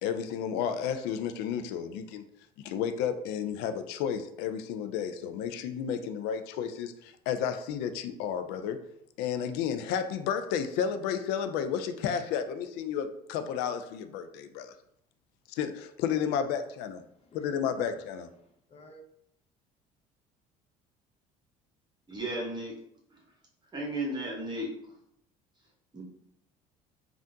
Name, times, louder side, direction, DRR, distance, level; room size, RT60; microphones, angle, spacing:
voice 1, 0.0-2.2 2.6-8.8 9.2-14.7 15.5-17.0 17.3-18.3, left 8 dB, 75° left, 10 dB, 0.4 m, -32 dB
voice 2, 17.0-19.0, equal, 40° left, 1 dB, 0.7 m, -53 dB
voice 3, 22.1-22.7 23.1-23.2 23.7-24.7 25.9-26.0, right 1 dB, 25° right, -3 dB, 1.0 m, -34 dB
3.5 x 2.5 x 2.7 m, 0.74 s
supercardioid pair, 75°, 17 cm